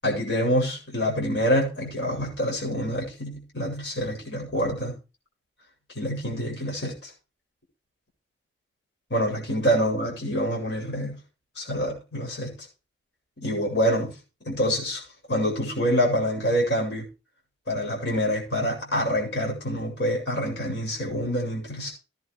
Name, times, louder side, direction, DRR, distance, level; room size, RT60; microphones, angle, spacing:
voice 1, 0.0-4.9 5.9-7.1 9.1-11.2 11.6-12.5 13.4-14.1 14.4-15.0 15.3-17.1 17.7-21.9, equal, 85° left, -1 dB, 7.8 m, -26 dB
18.0 x 10.5 x 3.4 m, 0.31 s
head